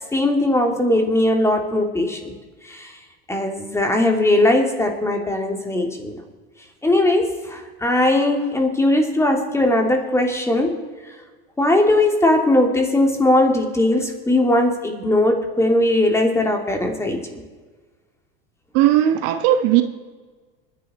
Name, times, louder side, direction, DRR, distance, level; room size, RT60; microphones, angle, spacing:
voice 1, 0.1-2.3 2.6-2.9 3.3-6.2 6.8-10.8 11.6-17.2, left 1 dB, 10° left, 2.7 m, -19 dB
voice 2, 18.7-19.8, right 12 dB, 60° right, 1.3 m, -17 dB
24.5 x 10.5 x 4.3 m
supercardioid pair, 115°, 29 cm